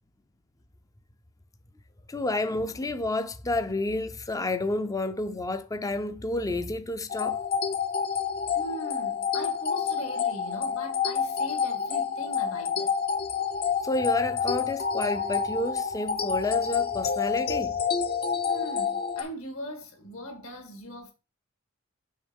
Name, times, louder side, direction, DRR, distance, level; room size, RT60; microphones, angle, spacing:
voice 1, 2.1-7.4 13.8-17.8, left 2 dB, 15° left, 0.5 m, -30 dB
sound 1, 7.1-19.2, left 6 dB, 45° left, 0.8 m, -28 dB
voice 2, 8.5-12.9 18.5-21.1, equal, 70° left, 2.1 m, -40 dB
6.4 x 3.5 x 5.2 m
head